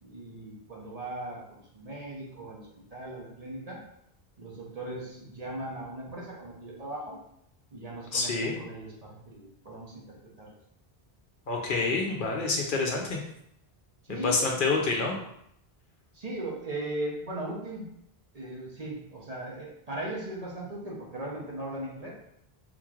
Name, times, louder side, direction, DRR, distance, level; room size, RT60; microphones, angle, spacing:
voice 1, 0.0-3.8 4.4-7.2 7.7-10.5 14.0-14.6 16.1-17.8 18.3-22.1, right 1 dB, 45° right, -3 dB, 0.8 m, -38 dB
voice 2, 8.1-8.5 11.5-13.2 14.2-15.2, left 3 dB, 60° left, 0 dB, 0.7 m, -27 dB
3.8 x 3.1 x 2.4 m, 0.75 s
omnidirectional pair, 1.0 m